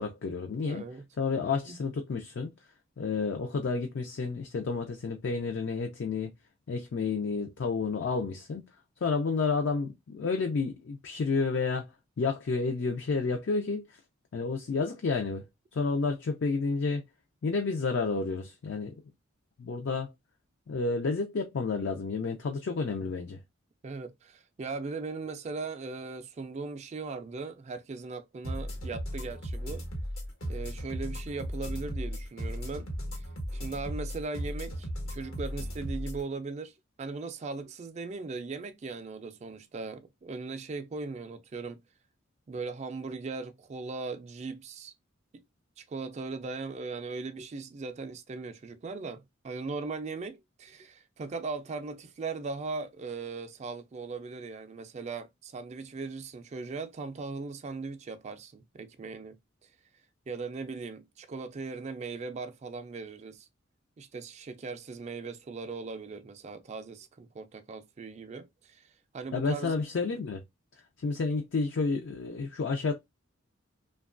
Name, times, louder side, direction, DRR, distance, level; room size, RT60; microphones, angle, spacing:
voice 1, 0.0-0.8 1.2-2.5 3.0-6.3 6.7-8.6 9.0-11.9 12.2-14.0 14.3-15.4 15.7-17.0 17.4-18.9 19.6-20.1 20.7-23.4 69.3-70.4 71.0-72.9, left 4 dB, 60° left, 0.4 m, -30 dB
voice 2, 0.6-1.1 1.7-1.8 23.8-29.8 30.5-32.9 33.1-33.3 33.5-41.8 42.5-44.9 45.3-45.4 45.8-59.7 60.3-63.5 64.0-68.9 69.1-69.7, right 4 dB, 35° right, 0.3 m, -39 dB
sound 1, 28.4-36.2, equal, 80° left, 1.1 m, -36 dB
2.8 x 2.2 x 2.4 m
head